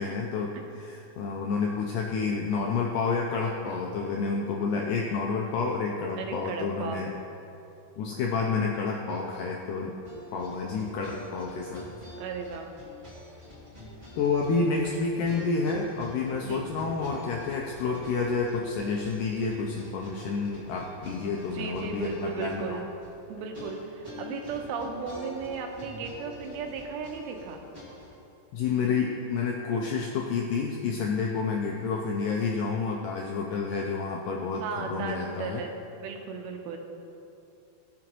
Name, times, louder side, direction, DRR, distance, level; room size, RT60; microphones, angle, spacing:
voice 1, 0.0-7.1 8.0-10.0 10.3-11.9 14.2-22.8 28.5-35.6, left 4 dB, 85° left, 0 dB, 1.9 m, -29 dB
voice 2, 6.2-7.0 12.2-12.7 16.4-16.7 21.2-22.9 23.3-27.6 34.6-36.8, right 5 dB, 80° right, 3 dB, 2.6 m, -36 dB
sound 1, 10.0-28.2, left 1 dB, 30° right, 0.8 m, -46 dB
16.0 x 6.3 x 3.0 m, 2.8 s
omnidirectional pair, 4.4 m